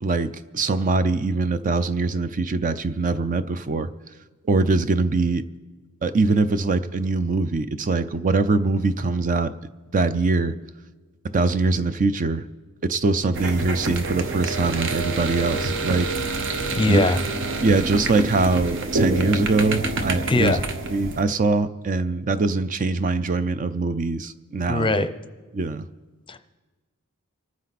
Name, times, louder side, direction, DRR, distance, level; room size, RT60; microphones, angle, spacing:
voice 1, 0.0-3.9 4.5-5.4 6.0-9.5 9.9-10.6 11.3-12.4 12.8-16.2 16.9-17.1 17.6-20.6 20.9-24.9 25.5-25.8, right 3 dB, 35° right, 12 dB, 0.5 m, -22 dB
sound 1, 13.3-21.2, right 3 dB, 60° right, 1.0 m, -27 dB
voice 2, 16.7-17.2 20.3-20.6 24.7-25.1 26.3-26.4, left 2 dB, 25° left, 10 dB, 0.6 m, -21 dB
27.5 x 9.5 x 4.1 m, 1.3 s
head